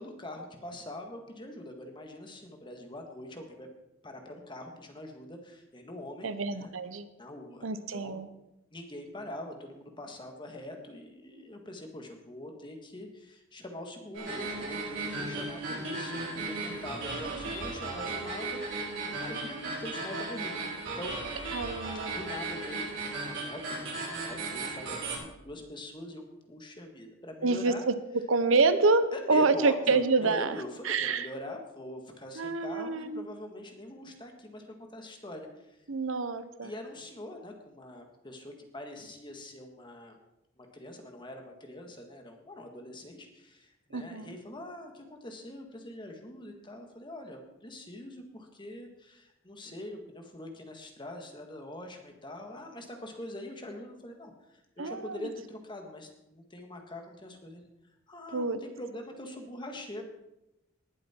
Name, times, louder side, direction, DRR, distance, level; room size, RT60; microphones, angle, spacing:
voice 1, 0.0-3.7 4.0-6.7 7.2-7.7 7.9-8.2 8.7-18.9 19.2-20.6 21.0-21.2 22.2-27.8 29.1-34.7 34.9-35.8 36.6-40.2 40.6-57.6 58.1-60.0, left 1 dB, 25° left, 3 dB, 1.8 m, -43 dB
voice 2, 6.2-7.1 7.6-8.3 21.5-22.2 27.4-27.9 28.3-30.6 30.8-31.3 32.4-33.2 35.9-36.7 43.9-44.3 54.8-55.2 58.3-58.6, right 3 dB, 85° right, 12 dB, 0.9 m, -27 dB
sound 1, 14.1-25.2, right 3 dB, 70° right, 5.7 m, -36 dB
20.0 x 7.6 x 4.5 m, 0.90 s
head